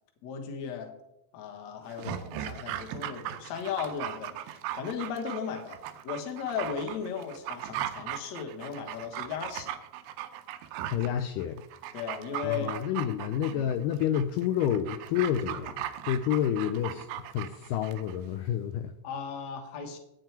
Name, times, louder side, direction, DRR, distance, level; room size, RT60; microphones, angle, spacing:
voice 1, 0.2-0.9 1.3-9.7 11.9-12.7 13.5-13.6 19.0-20.0, left 6 dB, 60° left, 3 dB, 2.1 m, -36 dB
Dog, 1.9-18.2 18.5-18.6, right 11 dB, 90° right, 2.5 m, -38 dB
voice 2, 10.8-11.6 12.4-18.9, left 10 dB, 80° left, 6 dB, 2.0 m, -29 dB
9.3 x 9.0 x 4.5 m, 0.87 s
omnidirectional pair, 4.2 m